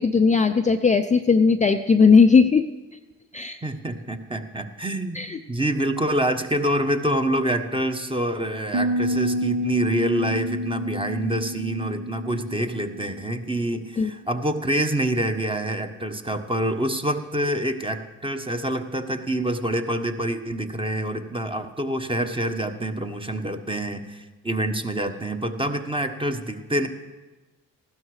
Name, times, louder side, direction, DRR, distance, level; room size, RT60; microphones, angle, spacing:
voice 1, 0.0-2.7 3.3-3.6 5.1-5.4 14.0-14.1, left 5 dB, 20° left, 6 dB, 0.5 m, -17 dB
voice 2, 3.6-26.9, right 1 dB, 15° right, 7 dB, 1.1 m, -26 dB
Piano, 8.7-14.3, equal, 60° right, 1.0 m, -29 dB
15.5 x 12.5 x 4.9 m, 1.2 s
cardioid pair, 70°, 34 cm